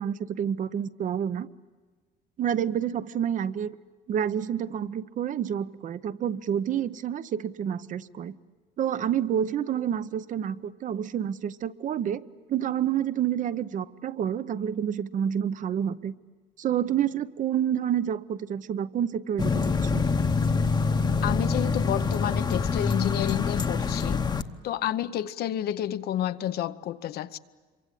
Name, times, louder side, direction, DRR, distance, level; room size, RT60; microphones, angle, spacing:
voice 1, 0.0-1.5 2.4-3.8 4.1-8.3 8.8-12.2 12.5-16.1 16.6-20.1, right 9 dB, 50° right, 0.7 m, -28 dB
sound 1, 19.4-24.4, left 4 dB, 25° left, 0.9 m, -25 dB
voice 2, 21.2-24.2 24.6-27.4, left 11 dB, 70° left, 0.8 m, -30 dB
26.5 x 24.0 x 8.3 m
cardioid pair, 110°, 17 cm